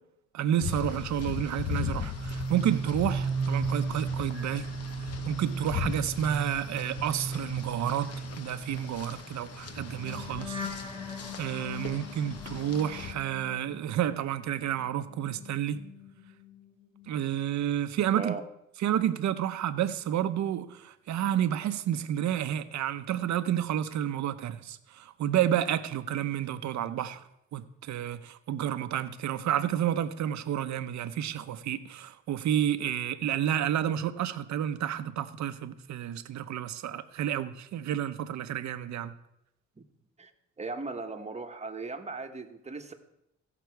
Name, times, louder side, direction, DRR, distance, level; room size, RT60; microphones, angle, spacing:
voice 1, 0.3-4.7 5.3-10.6 11.4-15.8 17.1-18.3 18.8-27.2 27.5-39.1, right 10 dB, 65° right, 0.8 m, -30 dB
sound 1, 0.6-13.1, left 7 dB, 55° left, 1.0 m, -39 dB
sound 2, 2.0-14.3 14.6-16.6 16.9-17.3, right 3 dB, 15° left, 3.3 m, -37 dB
voice 2, 40.6-42.9, right 3 dB, 20° right, 1.2 m, -37 dB
16.0 x 6.0 x 4.6 m
cardioid pair, 90°, 30 cm